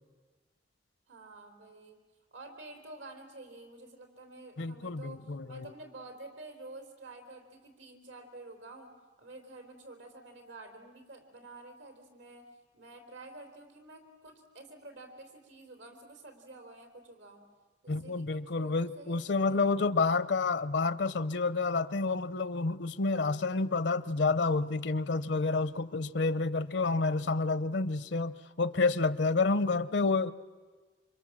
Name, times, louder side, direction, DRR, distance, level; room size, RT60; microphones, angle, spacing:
voice 1, 1.1-2.0 2.3-12.5 12.7-17.4 17.8-20.2, right 2 dB, 90° right, 4.2 m, -50 dB
voice 2, 4.6-5.7 17.9-30.3, left 3 dB, 70° left, 0.7 m, -29 dB
27.5 x 25.0 x 7.5 m
head